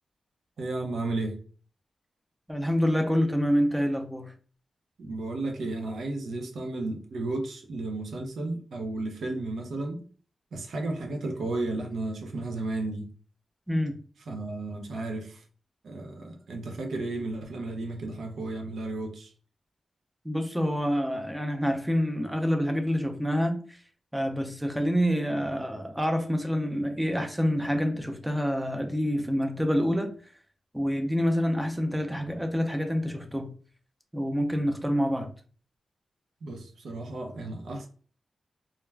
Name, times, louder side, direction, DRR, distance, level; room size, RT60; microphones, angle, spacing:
voice 1, 0.6-1.4 5.0-10.0 10.5-13.1 14.3-15.4 15.8-19.3 36.4-37.9, right 2 dB, 85° right, 0.6 m, -33 dB
voice 2, 2.5-4.3 13.7-14.0 20.2-23.8 24.1-30.1 30.7-33.5 34.1-35.3, equal, 5° right, 0.4 m, -27 dB
2.3 x 2.2 x 3.2 m
wide cardioid pair, 125°, 0 cm